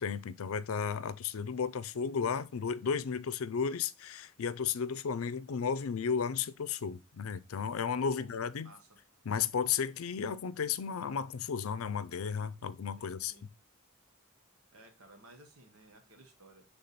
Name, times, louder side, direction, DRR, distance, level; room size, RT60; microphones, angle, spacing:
voice 1, 0.0-8.7 9.3-13.3, left 6 dB, 75° left, 0.5 m, -34 dB
voice 2, 13.0-13.5 14.7-16.6, right 2 dB, 90° right, 1.2 m, -57 dB
6.8 x 3.5 x 4.0 m
head